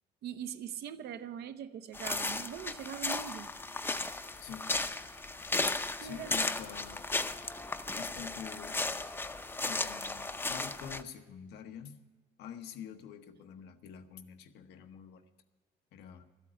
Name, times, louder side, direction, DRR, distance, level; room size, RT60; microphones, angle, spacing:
voice 1, 0.2-3.5 6.0-6.3 7.9-8.0, right 9 dB, 70° right, 0.8 m, -42 dB
sound 1, 1.9-11.0, left 2 dB, 15° left, 0.6 m, -35 dB
voice 2, 4.4-4.9 6.0-7.1 7.9-8.8 9.6-11.9 12.4-15.2 15.9-16.3, left 8 dB, 80° left, 1.1 m, -46 dB
13.0 x 8.3 x 10.0 m
cardioid pair, 110°, 17 cm